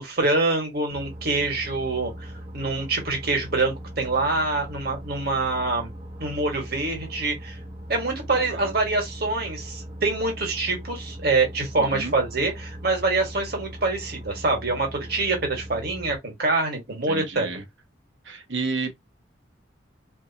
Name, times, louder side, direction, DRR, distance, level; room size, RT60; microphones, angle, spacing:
voice 1, 0.0-5.9 6.2-7.6 7.9-17.5, right 3 dB, 55° right, 1.9 m, -25 dB
sound 1, 0.9-16.2, equal, 30° right, 1.1 m, -39 dB
voice 2, 8.3-8.7 11.8-12.2 15.2-15.3 17.1-17.6 18.2-18.9, right 3 dB, 75° right, 1.4 m, -31 dB
3.8 x 3.4 x 2.9 m
head